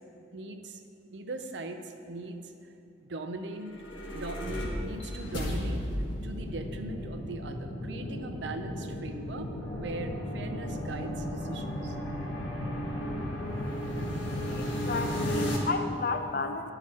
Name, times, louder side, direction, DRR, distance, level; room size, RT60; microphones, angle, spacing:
voice 1, 0.3-0.8 1.1-2.5 3.0-3.7 4.1-5.8 6.2-12.0, right 2 dB, 70° right, 6 dB, 0.6 m, -40 dB
sound 1, 3.5-15.6, equal, 85° left, 1.3 m, -34 dB
sound 2, 9.6-15.7, equal, 15° left, 0.7 m, -47 dB
voice 2, 14.5-16.7, left 3 dB, 50° left, 8 dB, 0.4 m, -33 dB
11.0 x 4.9 x 4.2 m, 2.6 s
head